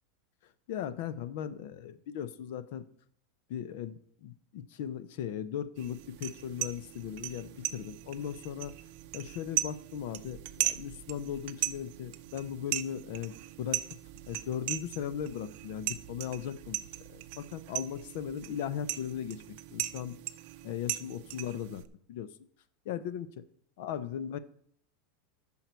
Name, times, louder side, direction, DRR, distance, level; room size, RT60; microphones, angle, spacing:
voice 1, 0.7-2.8 3.5-8.7 9.1-13.8 14.3-16.8 17.1-19.4 19.7-20.2 20.6-21.8 22.1-22.3 22.8-23.4 23.8-24.4, left 9 dB, 60° left, 13 dB, 0.8 m, -38 dB
sound 1, 5.8-21.9, right 15 dB, 55° right, 0.6 m, -38 dB
14.0 x 5.6 x 4.6 m, 0.64 s
supercardioid pair, 155°, 0 cm